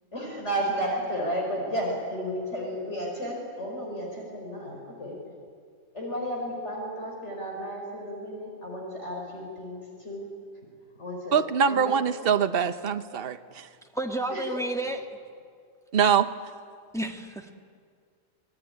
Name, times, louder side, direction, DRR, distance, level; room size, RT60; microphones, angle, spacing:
voice 1, 0.1-5.2 5.9-10.3 11.0-11.4 11.7-12.2 14.3-14.6, equal, 55° left, -1 dB, 5.3 m, -33 dB
voice 2, 11.3-13.7 15.9-16.3, right 7 dB, 45° right, 9 dB, 1.1 m, -23 dB
voice 3, 13.9-15.0 16.9-17.5, right 2 dB, ahead, 2 dB, 1.7 m, -31 dB
26.5 x 20.0 x 9.8 m, 2.1 s
omnidirectional pair, 1.4 m